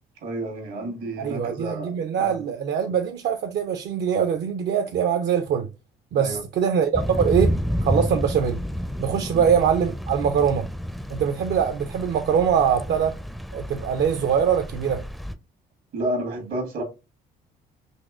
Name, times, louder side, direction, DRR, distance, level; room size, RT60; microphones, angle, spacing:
voice 1, 0.2-2.5 6.1-6.4 9.3-9.5 15.9-16.8, right 1 dB, 75° right, 1.4 m, -31 dB
voice 2, 1.2-5.7 6.1-7.6 7.8-8.6 9.0-10.7 11.1-13.2 13.5-15.0, right 7 dB, 60° right, 0.5 m, -23 dB
Thunder / Rain, 6.9-15.3, equal, ahead, 0.4 m, -30 dB
4.2 x 2.9 x 2.4 m
supercardioid pair, 60°, 20 cm